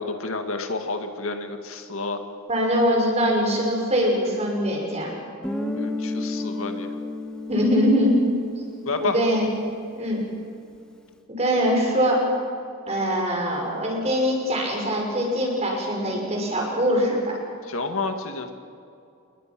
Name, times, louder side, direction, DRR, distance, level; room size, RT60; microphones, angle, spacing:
voice 1, 0.0-2.2 5.7-6.9 8.9-9.2 17.6-18.5, left 3 dB, 75° left, 6 dB, 2.0 m, -30 dB
voice 2, 2.5-5.1 7.5-8.2 9.0-9.6 9.9-10.2 11.3-12.2 12.9-17.4, equal, 30° right, 0 dB, 6.1 m, -22 dB
Guitar, 5.4-10.0, left 2 dB, 5° left, 1.5 m, -32 dB
28.5 x 21.0 x 6.1 m, 2.5 s
head